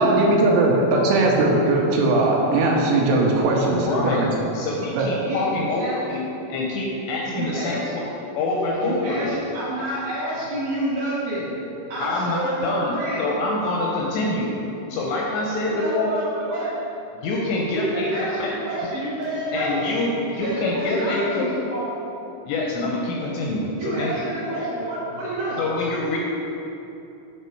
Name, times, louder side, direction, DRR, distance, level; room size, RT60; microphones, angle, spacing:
voice 1, 0.0-4.3 5.0-5.1, right 2 dB, 80° right, -1 dB, 3.1 m, -19 dB
voice 2, 3.7-4.3 4.5-8.0 8.4-9.4 12.0-12.9 13.2-14.5 14.9-16.1 17.2-18.6 19.5-21.5 22.5-24.2 25.6-26.2, left 2 dB, 80° left, -2 dB, 2.6 m, -26 dB
voice 3, 5.2-6.0 7.3-8.0 8.8-11.5 11.9-13.2 15.7-16.7 17.7-19.8 20.4-21.8 23.8-25.6, right 1 dB, 65° right, -9 dB, 2.6 m, -28 dB
9.3 x 3.6 x 4.4 m, 2.9 s
omnidirectional pair, 5.5 m